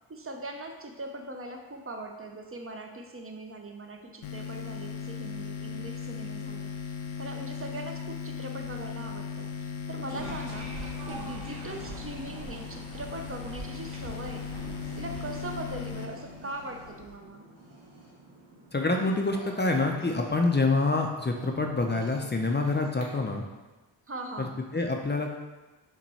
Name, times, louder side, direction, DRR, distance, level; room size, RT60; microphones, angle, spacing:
voice 1, 0.1-6.7 7.2-14.5 15.0-17.4 24.1-24.6, right 1 dB, 30° right, 4 dB, 0.6 m, -40 dB
sound 1, 4.2-17.2, left 6 dB, 75° left, 0.6 m, -38 dB
sound 2, 9.9-23.0, right 1 dB, 70° right, 1.2 m, -50 dB
sound 3, 10.1-15.9, right 2 dB, 55° right, 1.5 m, -44 dB
voice 2, 18.7-23.4 24.4-25.3, left 3 dB, 20° left, 2 dB, 0.5 m, -27 dB
5.8 x 2.2 x 4.1 m, 1.2 s
cardioid pair, 55°, 49 cm